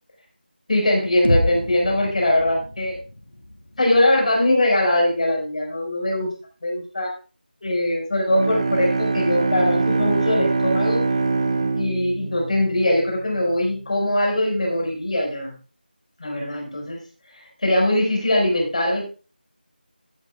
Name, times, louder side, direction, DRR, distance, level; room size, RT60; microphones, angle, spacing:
voice 1, 0.7-3.0 3.8-6.3 6.6-7.1 7.6-11.1 11.7-15.5 16.2-17.0 17.6-19.0, left 1 dB, 45° left, -1 dB, 5.3 m, -21 dB
sound 1, 1.2-5.2, left 1 dB, 80° left, 2.1 m, -29 dB
Bowed string instrument, 8.3-13.4, right 3 dB, 35° right, 0.8 m, -23 dB
15.5 x 9.1 x 2.4 m, 0.35 s
figure-of-eight pair, 170°, 5 cm